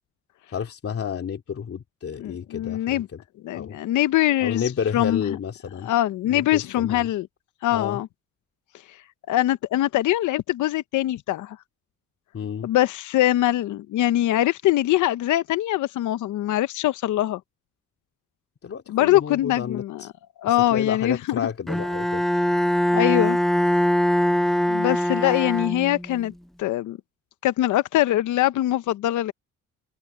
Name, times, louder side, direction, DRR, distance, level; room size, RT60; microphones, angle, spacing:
voice 1, 0.5-3.0 3.5-3.8 4.4-5.9 6.3-7.1 7.7-8.0 12.3-12.7 18.6-20.1 20.4-22.3, left 7 dB, 50° left, 2.9 m, -31 dB
voice 2, 2.2-3.1 3.4-5.4 5.8-7.3 7.6-8.1 9.3-11.6 12.6-17.4 18.9-20.0 20.4-21.4 22.9-23.4 24.7-26.3 26.6-27.0 27.4-29.3, left 14 dB, 80° left, 0.8 m, -23 dB
Bowed string instrument, 21.7-26.2, equal, ahead, 0.5 m, -22 dB
cardioid pair, 90°, 30 cm